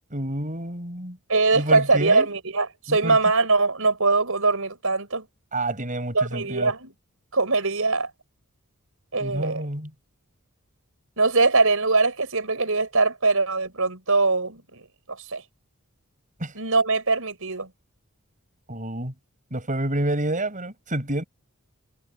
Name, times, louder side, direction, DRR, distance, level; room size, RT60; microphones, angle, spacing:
voice 1, 0.1-1.2 1.5-2.3 2.9-3.2 5.5-6.7 9.2-9.9 16.4-16.5 18.7-19.1 19.5-21.2, right 1 dB, 35° right, 7.9 m, -28 dB
voice 2, 1.3-5.2 6.1-6.9 7.3-8.1 9.1-9.6 11.2-15.4 16.5-17.7, right 3 dB, 70° right, 6.8 m, -22 dB
head